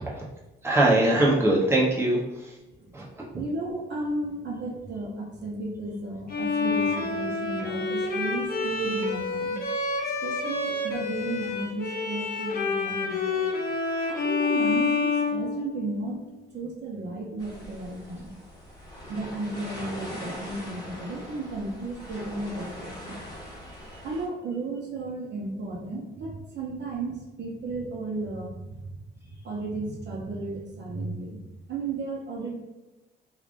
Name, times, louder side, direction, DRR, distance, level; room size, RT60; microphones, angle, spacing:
voice 1, 0.6-2.5 2.9-3.0, right 1 dB, 10° right, -4 dB, 0.8 m, -22 dB
voice 2, 2.8-9.6 10.2-13.5 14.1-16.2 16.5-18.3 19.1-23.1 24.0-28.5 29.4-31.4 31.7-32.5, right 2 dB, 60° right, -1 dB, 0.8 m, -34 dB
Bowed string instrument, 6.3-16.1, left 4 dB, 50° left, 0.6 m, -28 dB
sound 1, 17.4-24.3, equal, 20° left, 1.3 m, -41 dB
3.2 x 2.5 x 2.5 m, 1.0 s
cardioid pair, 90°, 20 cm